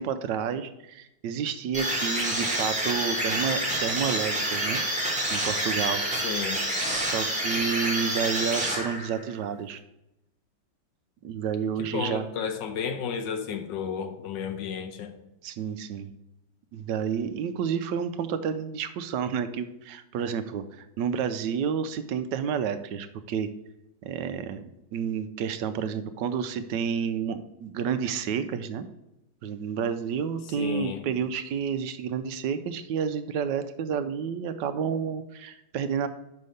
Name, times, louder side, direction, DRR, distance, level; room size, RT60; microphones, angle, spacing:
voice 1, 0.0-4.8 5.3-6.0 6.9-9.8 11.2-12.2 15.4-16.1 16.7-23.5 24.0-24.6 24.9-28.8 29.4-36.1, right 7 dB, 75° right, 10 dB, 1.2 m, -30 dB
sound 1, 1.7-9.3, right 1 dB, 5° right, 1.6 m, -28 dB
voice 2, 6.2-6.6 11.8-15.1 30.6-31.0, left 7 dB, 75° left, 8 dB, 1.4 m, -32 dB
5.5 x 5.4 x 6.4 m, 0.90 s
omnidirectional pair, 2.0 m